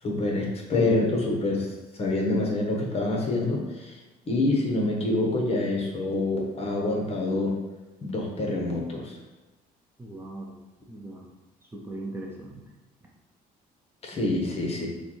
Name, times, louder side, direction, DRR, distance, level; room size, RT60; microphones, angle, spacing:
voice 1, 0.0-1.7 2.0-4.0 4.3-7.6 8.0-9.2 14.0-14.9, left 2 dB, 35° left, 0 dB, 1.0 m, -26 dB
voice 2, 10.0-10.5 10.9-11.3 11.7-12.6 14.7-14.8, right 2 dB, 15° right, -3 dB, 0.6 m, -39 dB
6.5 x 2.3 x 3.1 m, 1.2 s
cardioid pair, 110°, 17 cm